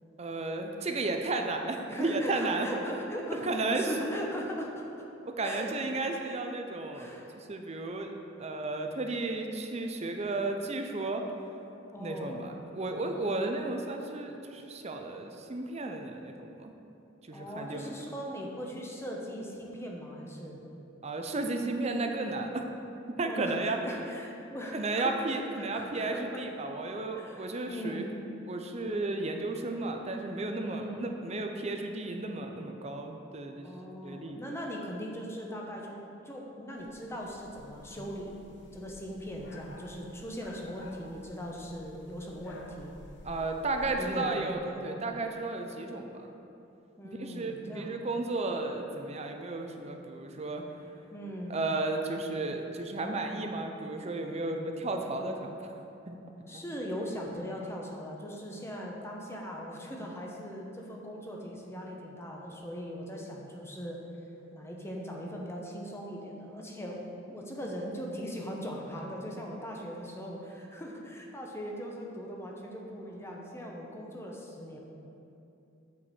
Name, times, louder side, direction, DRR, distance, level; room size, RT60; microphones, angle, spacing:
voice 1, 0.2-2.7 3.4-3.9 5.3-8.1 8.4-11.2 12.0-16.7 17.3-17.9 21.0-22.6 23.2-23.8 24.7-28.0 28.5-33.6 34.0-34.4 43.2-46.3 47.2-50.6 51.5-55.7 56.1-56.2 56.5-56.6, right 2 dB, 35° right, 4 dB, 0.6 m, -33 dB
voice 2, 1.9-4.9 5.4-5.7 6.9-7.4 11.9-13.0 17.3-20.6 23.2-26.4 27.1-28.1 30.6-31.1 33.6-38.3 38.7-42.9 44.0-44.3 44.6-45.0 47.0-48.0 51.1-51.5 56.5-64.0 64.5-67.0 67.3-74.8, equal, 15° left, -1 dB, 0.9 m, -39 dB
sound 1, 36.8-44.0, left 1 dB, 60° left, 0.8 m, -51 dB
8.5 x 4.6 x 6.9 m, 2.8 s
head